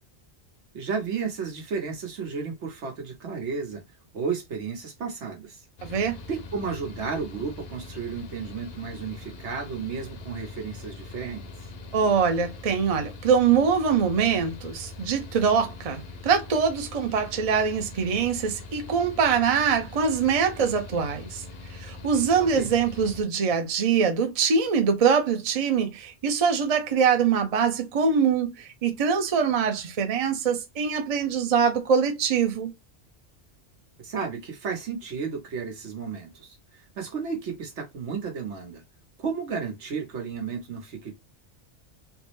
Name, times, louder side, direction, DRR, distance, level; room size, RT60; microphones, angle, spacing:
voice 1, 0.7-3.8 4.1-5.6 6.3-11.5 22.5-22.7 34.0-36.6 37.0-38.8 39.2-41.1, right 5 dB, 80° right, 1.2 m, -33 dB
Mechanical fan, 5.8-23.2, left 3 dB, 65° left, 0.9 m, -42 dB
voice 2, 5.8-6.2 11.9-21.4 21.8-32.7, right 6 dB, 45° right, 0.5 m, -23 dB
3.3 x 2.1 x 3.0 m
omnidirectional pair, 1.2 m